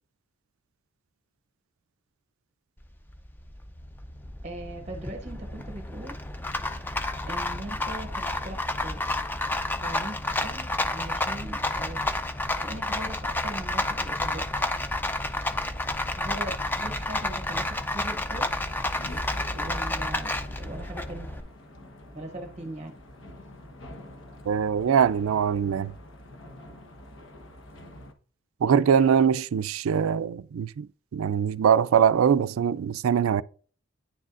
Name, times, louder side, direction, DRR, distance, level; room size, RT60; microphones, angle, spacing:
Rattle, 2.8-21.4, left 2 dB, 10° left, 0.4 m, -30 dB
voice 1, 4.4-6.1 7.3-8.6 8.8-9.0 9.8-12.0 12.6-14.4 16.2-18.4 19.5-21.3 22.1-22.9, right 1 dB, 30° right, 0.7 m, -40 dB
sound 1, 18.3-21.6, equal, 45° left, 1.3 m, -41 dB
sound 2, 18.4-28.1, left 1 dB, 65° left, 1.1 m, -47 dB
voice 2, 24.5-25.9 28.6-30.9 31.1-33.4, right 7 dB, 80° right, 0.3 m, -22 dB
9.9 x 6.4 x 2.5 m
head